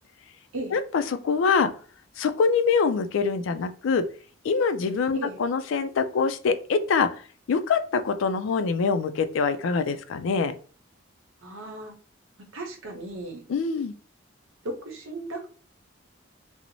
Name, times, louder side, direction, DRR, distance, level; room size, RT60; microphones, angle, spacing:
voice 1, 0.7-1.7 2.2-4.1 4.4-7.1 7.5-10.5 13.5-13.9, left 5 dB, 75° left, 11 dB, 0.3 m, -24 dB
voice 2, 11.4-11.9 12.5-13.4 14.6-15.4, right 2 dB, 85° right, 3 dB, 0.7 m, -35 dB
2.5 x 2.0 x 2.9 m, 0.41 s
head